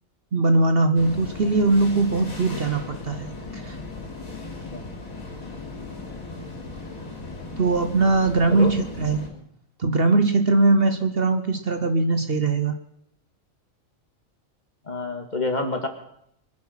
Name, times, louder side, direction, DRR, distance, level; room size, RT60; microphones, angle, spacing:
voice 1, 0.3-3.8 7.6-9.2 9.8-12.7, right 3 dB, 50° right, 8 dB, 1.1 m, -21 dB
sound 1, 1.0-9.3, left 3 dB, 90° left, 4.0 m, -37 dB
voice 2, 14.8-15.9, left 2 dB, 30° left, 5 dB, 2.1 m, -28 dB
24.0 x 10.0 x 5.8 m, 0.74 s
omnidirectional pair, 1.4 m